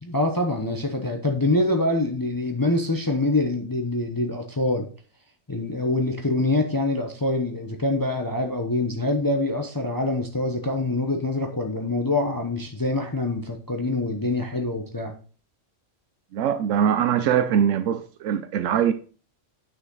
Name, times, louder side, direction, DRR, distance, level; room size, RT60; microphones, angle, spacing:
voice 1, 0.0-4.9 5.5-15.2, left 2 dB, 20° left, 0.8 m, -25 dB
voice 2, 16.3-18.9, right 9 dB, 85° right, 1.0 m, -22 dB
9.0 x 6.4 x 3.9 m
omnidirectional pair, 1.3 m